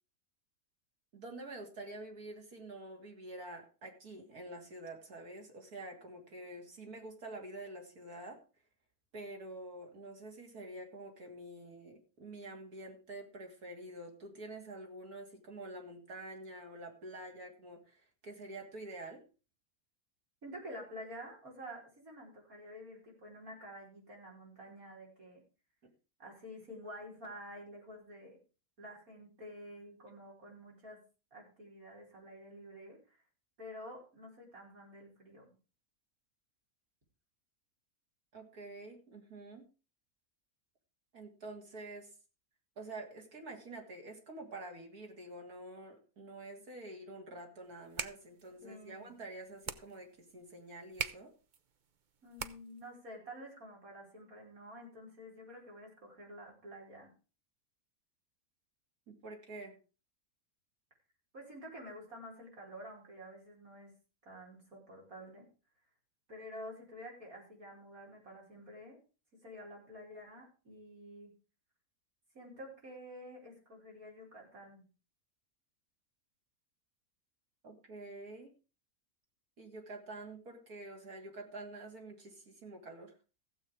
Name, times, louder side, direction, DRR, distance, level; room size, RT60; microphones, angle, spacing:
voice 1, 1.1-8.4 9.1-19.2 25.8-25.9 38.3-39.7 41.1-42.1 42.8-51.3 59.1-59.8 77.6-78.5 79.6-83.1, right 2 dB, 85° right, 2 dB, 3.3 m, -47 dB
voice 2, 20.4-25.4 26.2-28.4 28.8-31.0 31.3-33.2 33.6-35.5 48.6-49.1 52.2-57.1 61.3-63.9 64.2-65.5 66.3-69.0 69.4-71.3 72.3-74.8, equal, 70° right, -1 dB, 5.4 m, -49 dB
sound 1, 47.7-52.9, right 6 dB, 45° right, 0.7 m, -44 dB
15.0 x 7.9 x 5.0 m, 0.34 s
omnidirectional pair, 1.5 m